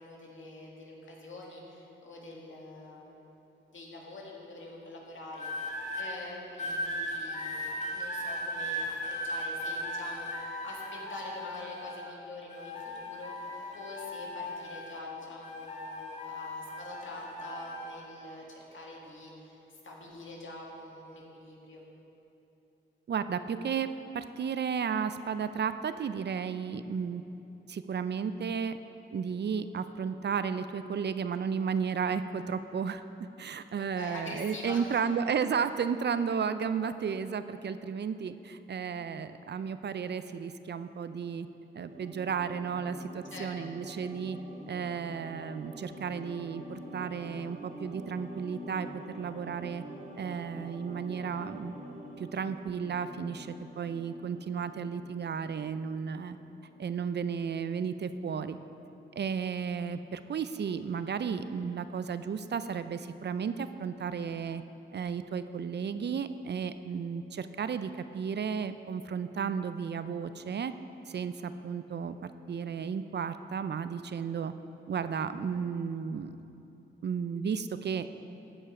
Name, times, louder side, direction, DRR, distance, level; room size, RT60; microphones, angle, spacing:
voice 1, 0.0-3.4 3.7-21.9 33.8-35.0 43.3-43.5, left 2 dB, 70° left, -3 dB, 2.0 m, -45 dB
sound 1, 5.3-6.1 6.6-12.1 12.5-15.1 15.4-17.9 18.7-19.0, equal, 35° left, 1.9 m, -37 dB
voice 2, 23.1-23.9 24.1-27.2 27.7-28.8 29.1-33.0 33.4-41.5 41.7-44.4 44.7-48.9 49.2-49.8 50.2-51.7 52.2-56.4 56.8-58.6 59.2-64.6 64.9-70.7 71.1-72.2 72.5-74.5 74.9-76.4 77.0-78.1, right 6 dB, 55° right, 12 dB, 0.4 m, -33 dB
sound 2, 41.9-56.4 56.7-56.8, right 1 dB, 40° right, 2.1 m, -46 dB
14.5 x 5.4 x 4.9 m, 3.0 s
cardioid pair, 55°, 21 cm